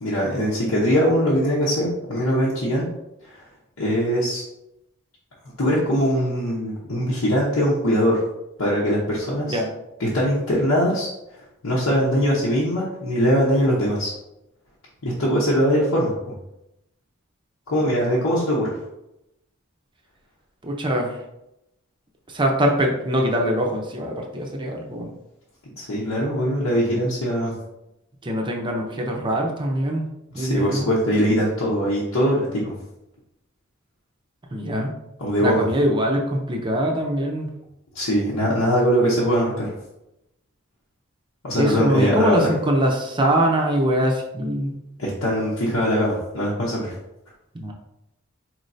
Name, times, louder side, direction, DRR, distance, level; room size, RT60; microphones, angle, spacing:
voice 1, 0.0-2.8 3.2-3.4 3.8-4.4 5.6-8.2 8.6-9.6 10.0-11.1 11.6-14.1 15.0-16.3 17.7-18.8 25.8-27.5 30.3-32.7 35.2-35.6 37.9-39.7 41.4-42.4 45.0-46.9, equal, 90° left, -6 dB, 0.9 m, -21 dB
voice 2, 20.6-21.2 22.3-25.1 28.2-30.1 30.3-30.9 34.5-34.9 35.4-37.5 41.5-44.8 47.5-47.7, equal, 20° right, 1 dB, 0.5 m, -23 dB
4.5 x 3.1 x 2.6 m, 0.87 s
head